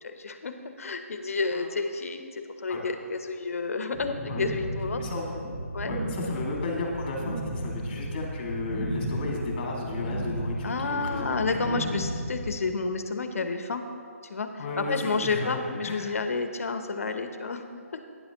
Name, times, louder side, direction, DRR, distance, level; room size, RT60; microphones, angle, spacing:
voice 1, 0.0-5.0 5.7-5.9 10.6-13.8 14.3-14.5 14.8-17.6 17.9-18.0, left 4 dB, 70° left, 8 dB, 0.9 m, -30 dB
sound 1, 3.9-12.5, right 1 dB, 40° right, 1.8 m, -34 dB
voice 2, 5.0-5.6 5.9-12.0 14.6-16.2, left 3 dB, 35° left, -1 dB, 2.1 m, -34 dB
12.0 x 9.5 x 3.0 m, 2.3 s
hypercardioid pair, 160°, 8 cm